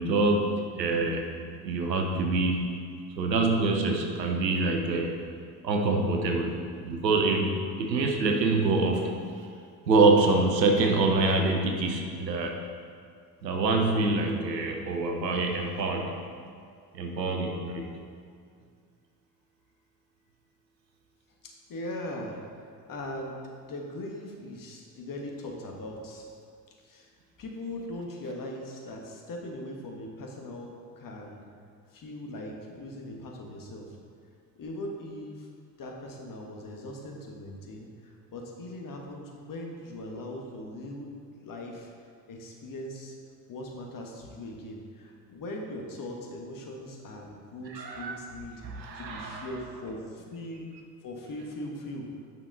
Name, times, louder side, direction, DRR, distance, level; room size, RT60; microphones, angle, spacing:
voice 1, 0.0-1.3 1.6-2.8 3.2-5.2 5.6-6.6 6.8-9.2 9.9-12.6 13.4-16.2 16.9-17.9 47.7-48.2 48.6-49.5, right 3 dB, 90° right, 3 dB, 0.9 m, -25 dB
voice 2, 21.4-26.3 26.8-27.1 27.4-31.5 31.9-34.0 34.6-35.5 35.8-41.1 41.4-41.9 42.3-43.2 43.5-48.6 48.9-50.7 51.0-52.1, left 1 dB, 40° left, 1 dB, 1.6 m, -40 dB
9.1 x 5.9 x 4.0 m, 2.2 s
figure-of-eight pair, 55°, 49 cm